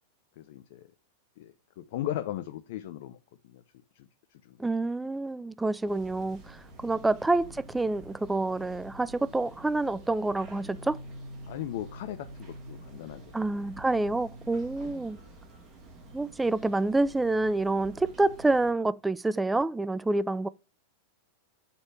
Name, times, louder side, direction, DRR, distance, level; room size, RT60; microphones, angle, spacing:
voice 1, 0.4-0.9 1.4-3.2 3.4-3.6 3.9-4.6 6.9-7.0 11.5-13.3 14.8-14.9, left 13 dB, 50° left, 0.6 m, -38 dB
voice 2, 4.6-11.0 13.3-15.2 16.1-20.5, right 2 dB, 10° right, 0.4 m, -28 dB
sound 1, 5.8-18.7, right 1 dB, 30° right, 2.8 m, -47 dB
7.0 x 4.3 x 4.6 m
figure-of-eight pair, 90°, 0 cm